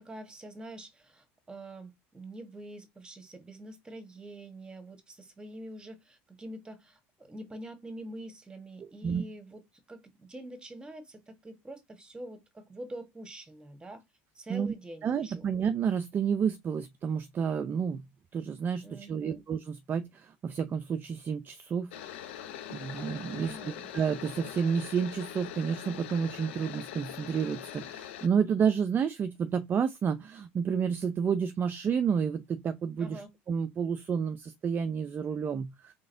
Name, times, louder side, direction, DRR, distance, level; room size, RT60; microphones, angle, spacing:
voice 1, 0.0-9.6 9.9-14.0 14.3-15.4 18.8-19.4 23.3-23.9 33.0-33.3, right 1 dB, 15° right, 1.3 m, -45 dB
voice 2, 8.8-9.2 14.5-14.7 15.0-18.0 18.3-21.9 22.3-23.6 23.9-33.2 33.5-35.9, right 7 dB, 30° right, 0.4 m, -30 dB
sound 1, 21.9-28.3, left 10 dB, 90° left, 0.7 m, -42 dB
3.9 x 3.7 x 2.6 m
supercardioid pair, 105°, 6 cm